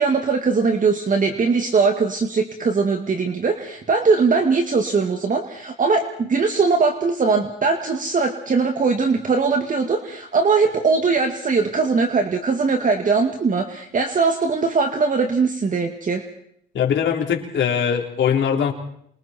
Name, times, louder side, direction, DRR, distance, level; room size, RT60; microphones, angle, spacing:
voice 1, 0.0-16.2, right 4 dB, 40° right, 4 dB, 2.3 m, -20 dB
voice 2, 16.7-18.7, left 8 dB, 65° left, 1 dB, 4.0 m, -21 dB
28.5 x 25.0 x 4.5 m, 0.70 s
cardioid pair, 90°, 20 cm